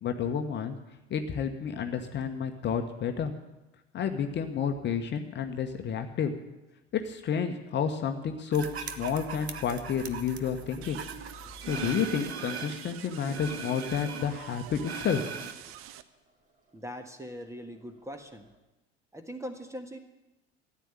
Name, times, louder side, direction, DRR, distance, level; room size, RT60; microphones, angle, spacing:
voice 1, 0.0-0.8 1.1-3.3 3.9-6.3 6.9-11.0 11.6-15.3, left 7 dB, 35° left, 6 dB, 1.2 m, -30 dB
sound 1, 8.5-18.6, left 4 dB, 25° right, 2.9 m, -54 dB
sound 2, 8.5-12.9 13.3-15.5, right 6 dB, 80° right, 1.0 m, -39 dB
sound 3, 10.8-16.0, right 11 dB, 45° right, 0.8 m, -46 dB
voice 2, 16.7-18.5 19.1-20.0, equal, 10° right, 7 dB, 1.6 m, -41 dB
14.0 x 9.6 x 8.9 m, 1.0 s
figure-of-eight pair, 70°, 32 cm